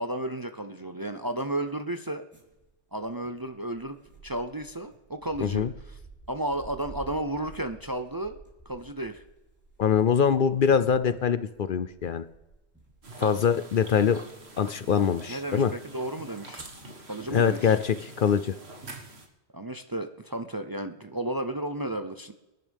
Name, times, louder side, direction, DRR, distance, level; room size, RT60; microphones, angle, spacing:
voice 1, 0.0-2.3 2.9-4.0 4.2-6.0 6.3-8.4 8.7-9.2 13.2-13.3 15.3-16.6 17.1-17.8 19.5-22.3, right 1 dB, 25° right, 8 dB, 0.6 m, -33 dB
sound 1, 2.3-15.5 16.2-16.3 16.6-16.8 17.2-17.8, right 4 dB, 10° right, 3.7 m, -51 dB
voice 2, 5.4-5.7 9.8-12.3 13.2-14.2 14.6-15.7 17.3-18.6, left 7 dB, 60° left, 13 dB, 0.7 m, -23 dB
sound 2, 13.0-19.3, right 2 dB, 75° right, 2.1 m, -46 dB
25.0 x 11.0 x 3.5 m, 1.0 s
omnidirectional pair, 1.1 m